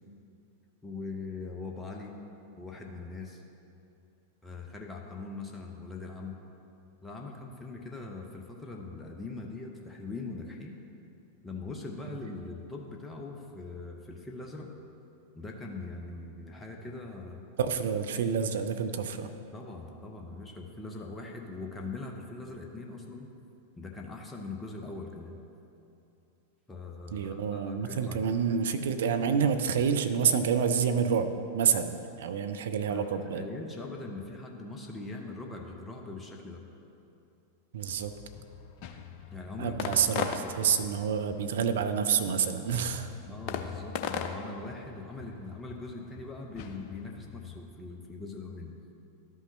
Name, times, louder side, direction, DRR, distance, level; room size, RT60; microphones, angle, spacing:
voice 1, 0.8-2.1 2.6-3.4 4.4-6.4 7.0-10.7 11.4-14.7 15.3-17.4 19.5-23.3 23.8-25.3 26.7-28.4 32.9-33.0 33.3-36.6 39.3-39.9 40.4-40.7 43.3-48.7, left 3 dB, 10° left, 0 dB, 0.7 m, -41 dB
voice 2, 17.6-19.3 27.1-31.3 31.5-33.5 37.7-38.1 39.6-43.1, right 7 dB, 60° right, 8 dB, 0.5 m, -28 dB
sound 1, 37.9-47.6, left 7 dB, 45° left, 0.5 m, -40 dB
12.5 x 5.5 x 3.1 m, 2.8 s
figure-of-eight pair, 90°, 0 cm